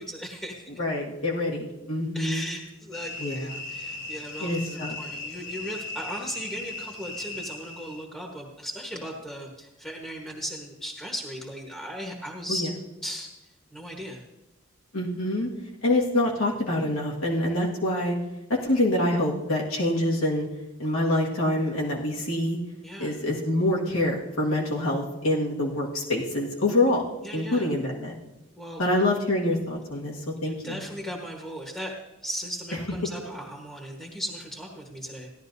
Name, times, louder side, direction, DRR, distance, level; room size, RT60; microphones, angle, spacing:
voice 1, 0.0-0.7 2.1-12.7 13.0-13.3 13.7-14.2 22.8-23.2 27.2-27.7 28.6-28.9 30.4-31.9 32.2-35.3, equal, 5° left, -1 dB, 1.2 m, -37 dB
voice 2, 0.8-2.5 3.2-3.5 4.4-5.0 12.5-12.6 14.9-15.5 15.8-18.1 18.6-20.5 20.8-22.6 23.0-27.0 27.3-28.2 28.8-30.8, left 1 dB, 80° left, -3 dB, 1.8 m, -26 dB
sound 1, 2.9-8.0, left 2 dB, 60° left, 1.4 m, -38 dB
16.0 x 11.0 x 2.7 m, 0.98 s
head